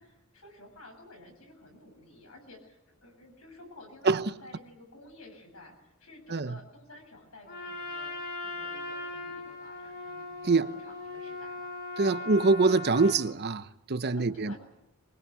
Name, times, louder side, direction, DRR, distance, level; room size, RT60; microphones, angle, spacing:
voice 1, 0.0-11.7 12.0-12.3 14.1-14.6, left 1 dB, 80° left, 7.8 m, -52 dB
Trumpet, 7.5-13.2, left 3 dB, 55° left, 7.5 m, -39 dB
voice 2, 12.0-14.5, right 3 dB, 50° right, 0.9 m, -24 dB
23.5 x 21.0 x 8.4 m
head